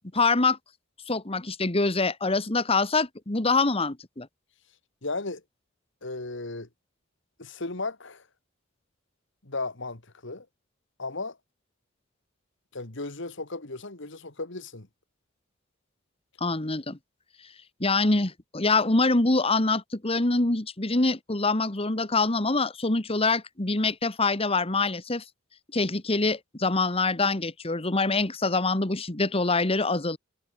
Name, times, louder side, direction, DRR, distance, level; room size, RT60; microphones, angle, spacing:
voice 1, 0.1-0.6 1.1-4.3 16.4-17.0 17.8-25.2 25.7-30.2, left 3 dB, 30° left, 1.6 m, -25 dB
voice 2, 5.0-5.4 6.0-6.7 7.4-8.3 9.4-10.5 11.0-11.4 12.7-14.9, left 3 dB, 60° left, 2.4 m, -35 dB
head